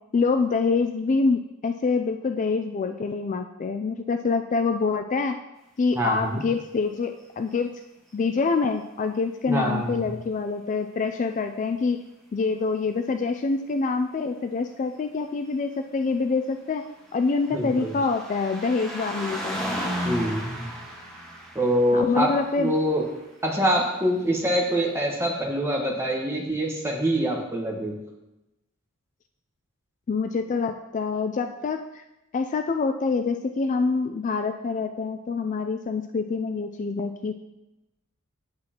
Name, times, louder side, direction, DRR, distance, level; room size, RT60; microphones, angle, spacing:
voice 1, 0.1-5.3 5.8-7.7 8.1-12.0 12.3-16.8 17.1-19.6 21.9-22.7 30.1-32.0 32.3-37.3, left 4 dB, 35° left, 7 dB, 0.3 m, -26 dB
voice 2, 5.9-6.4 9.5-10.0 17.5-17.9 20.0-20.7 21.5-22.3 22.6-23.0 23.4-28.0, equal, 10° right, -1 dB, 1.2 m, -25 dB
sound 1, 16.7-23.4 24.3-24.4, equal, 5° left, 1.4 m, -35 dB
8.6 x 7.7 x 2.9 m, 0.94 s
head